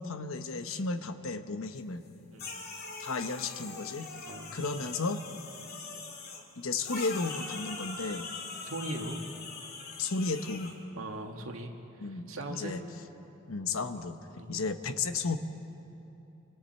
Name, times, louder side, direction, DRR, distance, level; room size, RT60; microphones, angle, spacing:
voice 1, 0.0-2.0 3.0-4.1 4.5-5.2 6.6-8.3 10.0-10.8 12.0-12.8 13.5-14.2 14.5-15.4, left 4 dB, 80° left, 9 dB, 1.1 m, -33 dB
sound 1, 2.4-6.4 6.8-10.7, left 4 dB, 50° left, 2.2 m, -42 dB
voice 2, 8.6-9.2 11.0-12.8 14.3-14.5, right 1 dB, 80° right, 2 dB, 2.0 m, -40 dB
29.0 x 25.5 x 4.4 m, 3.0 s
head